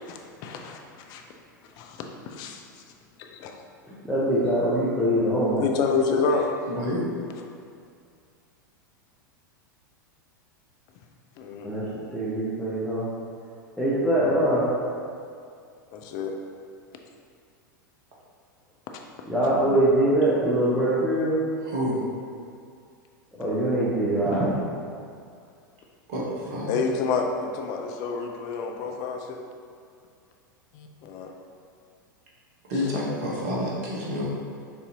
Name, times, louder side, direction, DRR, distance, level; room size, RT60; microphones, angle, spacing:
voice 1, 0.1-0.8 1.1-1.2 1.8-2.6 3.2-3.6 5.6-6.5 11.4-11.7 15.9-16.3 23.4-23.5 26.7-29.4 30.7-31.3, left 5 dB, 40° left, 3 dB, 0.5 m, -28 dB
voice 2, 4.1-5.6 11.6-11.8 12.1-13.1 13.8-14.6 19.3-21.3 23.4-24.5, right 1 dB, ahead, -12 dB, 0.9 m, -23 dB
voice 3, 6.7-7.0 21.6-22.0 26.1-26.7 32.7-34.3, left 1 dB, 50° right, -5 dB, 1.1 m, -28 dB
6.8 x 2.7 x 2.9 m, 2.3 s
figure-of-eight pair, 90°, 11 cm